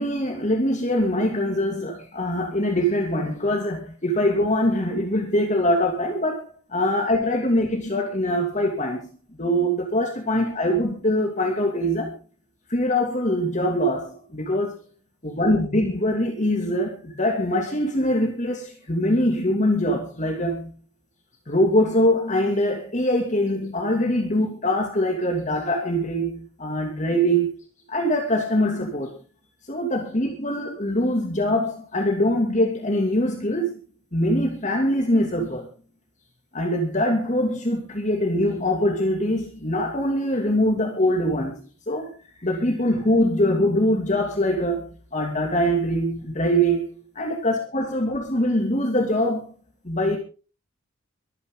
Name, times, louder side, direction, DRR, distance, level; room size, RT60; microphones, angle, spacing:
voice 1, 0.0-9.1 9.4-12.1 12.7-14.8 15.2-20.7 21.5-27.6 27.9-29.1 29.7-33.8 34.1-35.7 36.5-42.1 42.4-46.9 47.1-49.5 49.8-50.2, equal, 35° left, 2 dB, 2.8 m, -23 dB
24.0 x 9.9 x 4.0 m, 0.36 s
head